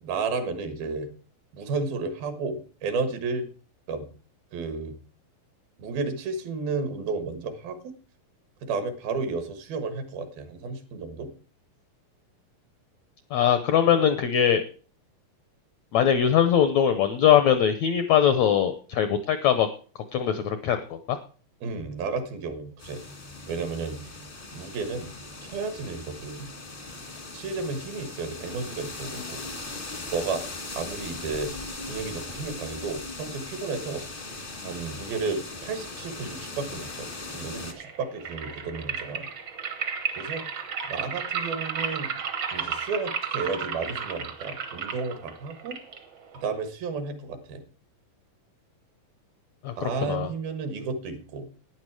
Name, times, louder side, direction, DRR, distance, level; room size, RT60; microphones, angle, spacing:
voice 1, 0.0-1.1 1.5-3.5 3.9-4.1 4.5-5.0 5.8-7.8 8.6-11.3 21.6-23.0 23.5-24.0 24.5-25.1 25.4-26.5 27.3-29.4 29.9-30.4 30.8-31.5 31.9-34.0 34.6-37.1 37.3-39.3 40.2-40.4 40.9-42.1 42.5-45.7 46.4-47.6 49.8-51.5, right 4 dB, 85° right, 8 dB, 3.4 m, -32 dB
voice 2, 13.3-14.6 15.9-19.7 20.1-21.2 49.6-50.3, left 9 dB, 85° left, 9 dB, 1.6 m, -21 dB
sound 1, 22.8-37.7, left 3 dB, 55° left, 0.5 m, -39 dB
sound 2, 37.7-46.7, right 6 dB, 70° right, 1.2 m, -33 dB
12.0 x 9.8 x 4.8 m, 0.40 s
omnidirectional pair, 4.1 m